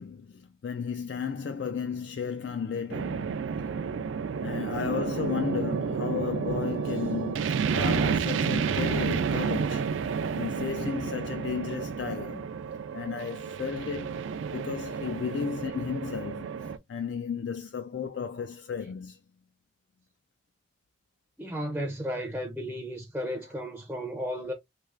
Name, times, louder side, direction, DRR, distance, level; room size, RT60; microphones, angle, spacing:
voice 1, 0.0-3.4 4.4-9.9 10.3-12.5 12.9-14.3 14.5-16.5 16.9-19.2, left 6 dB, 65° left, 0.4 m, -34 dB
sound 1, 2.9-16.8, right 6 dB, 80° right, 0.3 m, -30 dB
voice 2, 21.4-24.5, equal, 10° right, 0.4 m, -34 dB
3.2 x 3.2 x 2.4 m
head